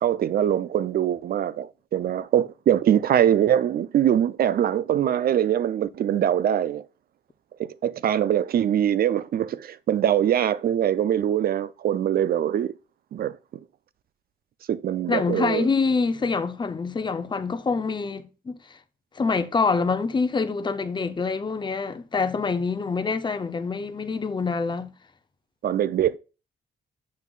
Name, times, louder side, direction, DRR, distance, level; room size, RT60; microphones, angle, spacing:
voice 1, 0.0-6.8 7.6-12.7 13.1-13.3 14.7-15.7 25.6-26.2, right 10 dB, 60° right, 0.5 m, -23 dB
voice 2, 15.1-18.8 19.1-24.9, left 4 dB, 25° left, 0.7 m, -26 dB
7.4 x 6.0 x 2.4 m
cardioid pair, 95°, 17 cm